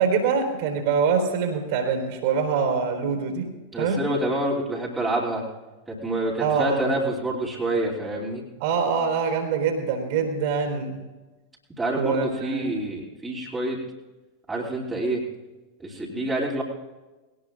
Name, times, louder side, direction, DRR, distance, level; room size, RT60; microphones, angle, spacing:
voice 1, 0.0-3.5 3.8-4.1 6.4-6.9 8.6-11.0 12.0-12.7, right 5 dB, 50° right, 3 dB, 3.9 m, -24 dB
voice 2, 3.7-5.4 5.9-8.4 11.8-13.8 14.5-15.2 15.8-16.6, right 1 dB, 10° right, -4 dB, 2.9 m, -27 dB
21.0 x 18.5 x 2.5 m, 1.2 s
figure-of-eight pair, 90°, 0 cm